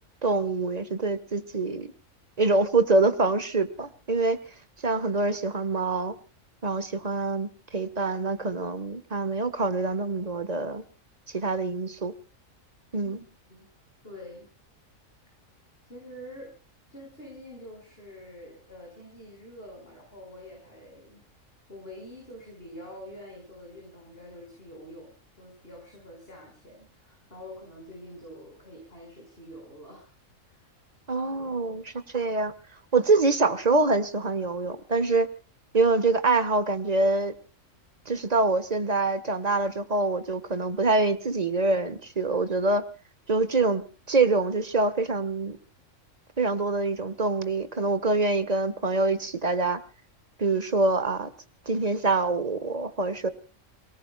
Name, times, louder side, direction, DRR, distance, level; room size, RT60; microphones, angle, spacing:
voice 1, 0.2-1.9 2.4-4.4 4.8-6.1 6.6-10.8 11.3-12.1 12.9-13.2 31.1-32.5 32.9-35.3 35.7-37.3 38.1-42.8 43.3-45.6 46.4-49.8 50.4-51.3 51.7-53.3, right 3 dB, 30° right, 12 dB, 1.4 m, -25 dB
voice 2, 14.0-14.5 15.8-16.6 16.9-21.2 21.7-30.1 30.5-30.7, left 1 dB, 45° left, 0 dB, 5.8 m, -46 dB
29.0 x 18.5 x 2.3 m, 0.35 s
omnidirectional pair, 1.4 m